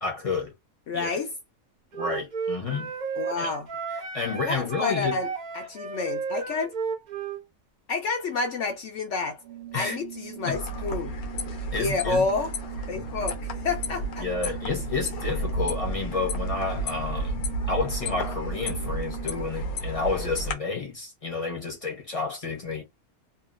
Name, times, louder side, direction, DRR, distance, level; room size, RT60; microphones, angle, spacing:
voice 1, 0.0-0.5 0.9-1.2 1.9-2.9 3.4-3.5 4.1-5.2 9.7-10.0 10.5-10.6 11.7-12.3 14.2-17.3 17.7-22.8, left 4 dB, 30° left, 0.8 m, -30 dB
voice 2, 0.9-1.3 3.2-3.7 4.4-5.3 5.5-6.7 7.9-9.4 9.7-11.1 11.8-12.6 12.9-13.4 13.6-14.5, left 4 dB, 65° left, 0.9 m, -29 dB
Wind instrument woodwind instrument, 1.9-7.4, right 5 dB, 45° right, 0.6 m, -33 dB
Organ, 9.4-19.7, right 13 dB, 70° right, 0.9 m, -42 dB
sound 1, 10.5-20.5, equal, 80° left, 1.3 m, -32 dB
2.8 x 2.4 x 2.4 m
omnidirectional pair, 1.5 m